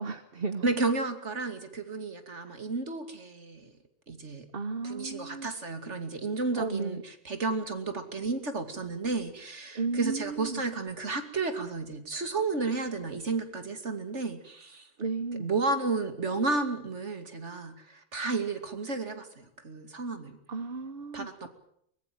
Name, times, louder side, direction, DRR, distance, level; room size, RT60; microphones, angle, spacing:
voice 1, 0.0-0.7 2.5-2.6 4.5-5.5 6.6-7.0 9.7-10.6 15.0-15.5 20.5-21.5, right 4 dB, 55° right, 9 dB, 1.4 m, -34 dB
voice 2, 0.6-3.7 4.1-4.5 4.8-14.9 15.4-20.4 21.1-21.5, right 3 dB, 80° right, 8 dB, 3.0 m, -32 dB
23.5 x 21.0 x 7.8 m, 0.71 s
omnidirectional pair, 1.2 m